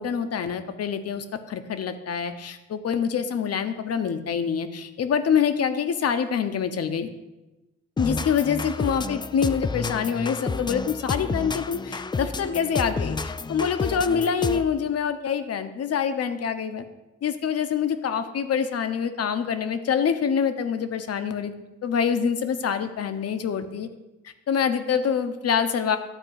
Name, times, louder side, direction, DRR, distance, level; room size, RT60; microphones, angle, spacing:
voice 1, 0.0-7.1 8.0-16.8 17.2-21.5 21.8-23.9 24.2-26.0, left 7 dB, 55° left, 9 dB, 1.0 m, -26 dB
sound 1, 8.0-14.8, left 4 dB, 15° left, 0.4 m, -30 dB
12.5 x 4.5 x 8.2 m, 1.1 s
cardioid pair, 90°, 30 cm